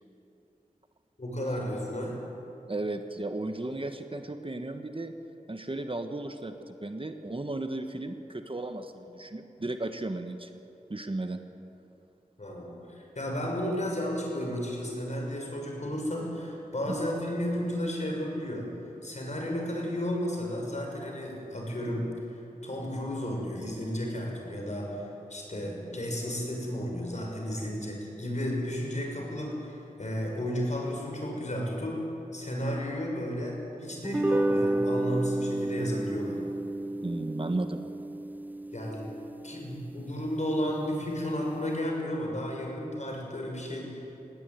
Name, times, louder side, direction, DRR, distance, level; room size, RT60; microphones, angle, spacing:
voice 1, 1.2-2.1 12.4-18.7 19.0-32.0 32.3-36.4 38.7-39.1 39.4-44.1, equal, 50° left, 0 dB, 6.5 m, -33 dB
voice 2, 2.7-5.1 5.5-10.5 10.9-11.4 16.9-17.0 37.0-37.8, right 2 dB, 35° right, 7 dB, 1.4 m, -35 dB
sound 1, 34.0-40.6, right 1 dB, 10° right, 0.4 m, -31 dB
19.0 x 17.0 x 9.4 m, 2.9 s
wide cardioid pair, 45°, 15 cm